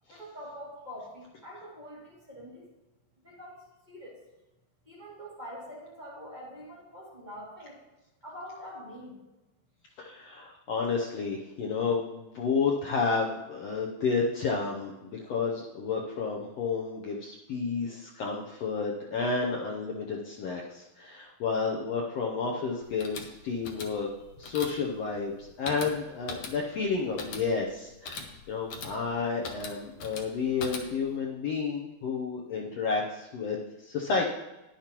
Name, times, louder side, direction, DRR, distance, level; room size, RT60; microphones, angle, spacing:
voice 1, 0.1-2.7 3.2-4.2 4.8-7.8 8.2-9.2, equal, 15° right, -6 dB, 2.2 m, -45 dB
voice 2, 10.0-24.1 24.4-34.3, left 5 dB, 85° left, -1 dB, 1.4 m, -31 dB
sound 1, 22.8-31.2, left 4 dB, 65° left, 1.4 m, -42 dB
12.5 x 10.0 x 3.0 m, 1.0 s
omnidirectional pair, 4.1 m